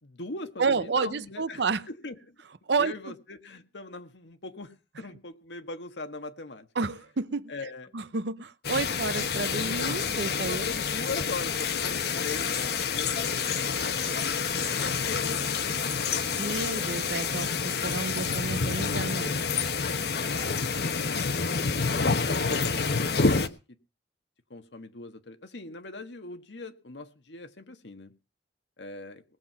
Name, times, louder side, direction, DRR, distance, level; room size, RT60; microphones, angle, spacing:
voice 1, 0.0-2.4 2.8-6.7 7.5-7.9 10.5-16.6 19.8-23.8 24.5-28.1 28.8-29.2, left 3 dB, 90° left, 1.5 m, -41 dB
voice 2, 0.6-1.8 2.7-3.0 6.8-7.5 7.9-10.7 16.4-19.6, right 4 dB, 75° right, 0.7 m, -30 dB
sound 1, 8.6-23.5, left 5 dB, 65° left, 1.0 m, -28 dB
19.5 x 7.7 x 5.7 m
head